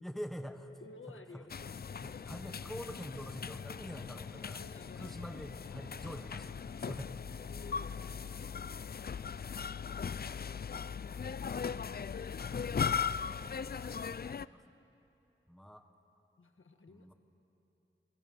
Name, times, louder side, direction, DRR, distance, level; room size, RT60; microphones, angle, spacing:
voice 1, 0.0-0.8 1.1-1.5 2.0-4.6 5.0-7.3 13.2-13.6 14.4-14.7 15.5-15.9 16.9-17.1, equal, ahead, 6 dB, 1.3 m, -45 dB
voice 2, 0.8-2.1 4.4-5.1 6.3-6.5 7.5-7.9 8.5-9.3 10.8-12.5 16.4-17.1, left 3 dB, 80° left, 6 dB, 1.4 m, -55 dB
sound 1, 1.5-14.5, left 6 dB, 50° left, 0.4 m, -39 dB
30.0 x 22.0 x 5.5 m, 2.9 s
wide cardioid pair, 60°, 21 cm